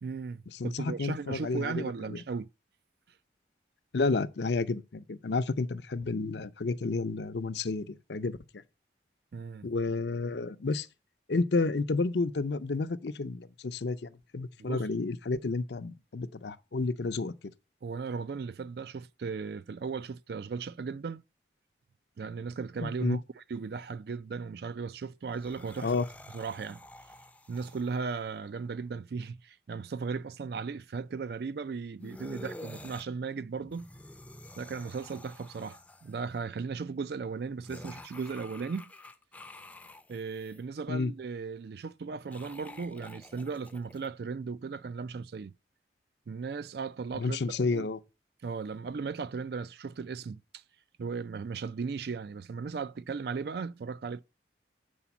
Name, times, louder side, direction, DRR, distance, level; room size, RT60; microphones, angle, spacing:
voice 1, 0.0-2.5 9.3-9.7 14.6-14.8 17.8-21.2 22.2-25.9 26.3-26.8 27.5-33.9 34.6-38.9 40.1-45.5 46.3-47.9 48.4-50.6 51.0-54.2, right 5 dB, 60° right, 0.4 m, -37 dB
voice 2, 0.6-2.2 3.9-8.4 9.6-10.9 11.3-17.3 22.8-23.2 25.8-26.1 40.9-41.1 47.1-48.0, left 3 dB, 70° left, 0.6 m, -31 dB
sound 1, 25.2-28.3 32.0-33.1 33.6-36.4 37.6-40.6 42.1-44.1, left 1 dB, 5° left, 0.5 m, -49 dB
7.1 x 5.0 x 7.1 m
head